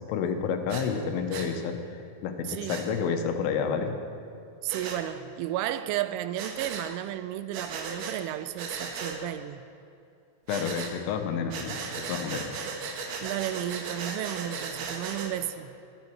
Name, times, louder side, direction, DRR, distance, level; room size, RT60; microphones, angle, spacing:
voice 1, 0.1-1.8 2.2-3.9 10.5-11.8 12.1-12.5, left 6 dB, 85° left, 6 dB, 3.7 m, -29 dB
Breathing, 0.7-0.9 1.3-1.5 2.7-2.9 4.7-5.0 6.4-6.9 7.5-8.2 8.6-9.2 10.5-10.9 11.5-15.3, right 5 dB, 70° right, 2.7 m, -36 dB
voice 2, 2.5-2.8 4.6-9.7 13.2-15.8, right 13 dB, 85° right, 13 dB, 3.0 m, -33 dB
24.0 x 9.6 x 4.6 m, 2.6 s
omnidirectional pair, 5.7 m